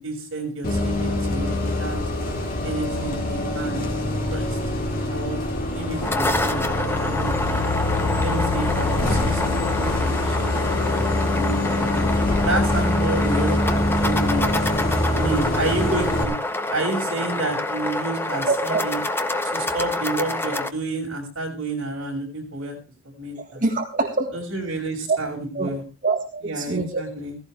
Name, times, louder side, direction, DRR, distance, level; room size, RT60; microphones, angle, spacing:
voice 1, 0.0-2.0 2.6-3.8 4.3-4.6 5.1-5.4 5.7-6.7 7.0-7.6 7.9-12.0 12.4-16.3 16.7-19.0 19.5-22.8 23.2-23.6 24.3-25.8 26.4-27.4, right 2 dB, 65° right, 0 dB, 6.4 m, -30 dB
Bus, 0.6-16.2, left 2 dB, 40° left, 3.6 m, -24 dB
sound 1, 5.8-20.7, left 2 dB, 10° left, 0.9 m, -27 dB
voice 2, 18.4-18.8 23.4-24.3 25.1-25.2 25.5-25.7 26.0-27.0, right 3 dB, 40° right, 1 dB, 1.8 m, -24 dB
16.5 x 16.0 x 3.3 m, 0.33 s
head